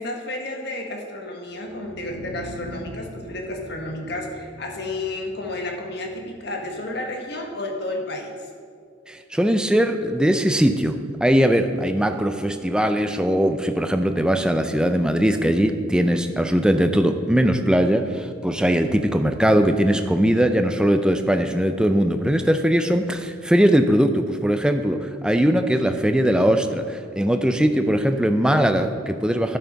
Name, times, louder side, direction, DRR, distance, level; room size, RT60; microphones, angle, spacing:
voice 1, 0.0-8.5, left 2 dB, 55° left, 2 dB, 1.3 m, -31 dB
sound 1, 1.5-7.5, equal, 85° left, 1.8 m, -43 dB
voice 2, 9.1-29.6, equal, 5° right, 7 dB, 0.4 m, -20 dB
11.5 x 5.8 x 5.2 m, 2.1 s
head